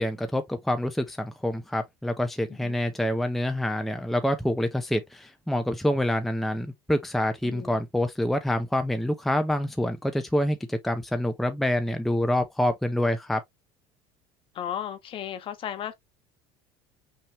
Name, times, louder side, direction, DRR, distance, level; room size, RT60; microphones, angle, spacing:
voice 1, 0.0-13.4, left 1 dB, ahead, 0.6 m, -26 dB
voice 2, 7.4-7.8 14.5-15.9, left 10 dB, 45° left, 1.3 m, -35 dB
5.8 x 3.0 x 3.0 m
supercardioid pair, 115°, 12 cm